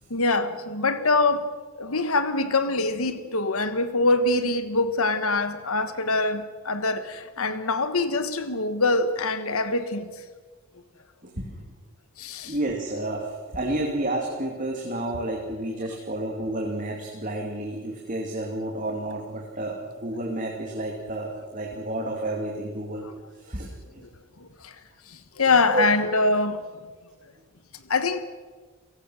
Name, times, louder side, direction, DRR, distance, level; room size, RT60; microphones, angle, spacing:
voice 1, 0.1-1.5 1.8-10.1 12.2-12.5 23.6-23.7 24.4-24.7 25.1-26.6 27.9-28.2, left 3 dB, 75° left, 1.4 m, -24 dB
voice 2, 11.2-11.6 12.4-23.1 23.4-24.0 25.7-25.9, right 1 dB, 35° right, 2.6 m, -30 dB
29.5 x 17.5 x 6.4 m
head